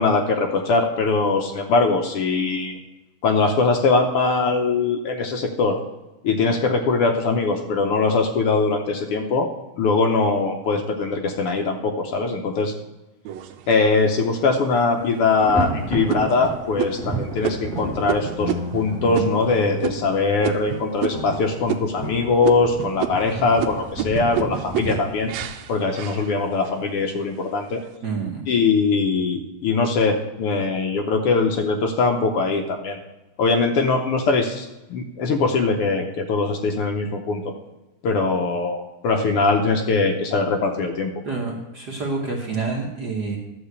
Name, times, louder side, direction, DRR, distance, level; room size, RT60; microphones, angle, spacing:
voice 1, 0.0-2.8 3.2-5.8 6.2-9.5 9.8-12.7 13.7-25.3 25.7-27.8 28.5-33.0 33.4-37.5 38.0-41.1, left 3 dB, 75° left, 3 dB, 1.3 m, -21 dB
sound 1, 13.3-14.1 14.7-14.8 15.3-15.6 16.1-21.4 21.7-22.2 22.4-26.8 27.2-27.8, right 10 dB, 75° right, 1.8 m, -30 dB
Thunder, 14.0-14.3 14.6-25.4, right 2 dB, 5° left, 0.5 m, -33 dB
sound 2, 18.4-20.7 21.1-23.4, left 2 dB, 30° left, 2.2 m, -34 dB
voice 2, 28.0-28.4 41.2-43.4, right 4 dB, 60° right, -1 dB, 1.0 m, -27 dB
12.0 x 4.7 x 8.0 m, 1.0 s
omnidirectional pair, 3.6 m